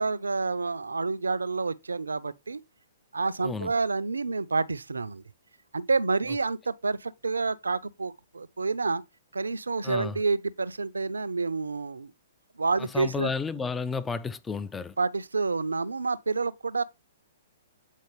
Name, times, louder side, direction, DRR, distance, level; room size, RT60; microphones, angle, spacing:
voice 1, 0.0-2.6 3.1-5.2 5.7-9.0 9.3-12.1 12.6-13.3 15.0-16.8, right 4 dB, 80° right, 0.5 m, -28 dB
voice 2, 12.9-14.9, left 5 dB, 10° left, 0.4 m, -32 dB
8.3 x 4.4 x 3.1 m
figure-of-eight pair, 120°, 0 cm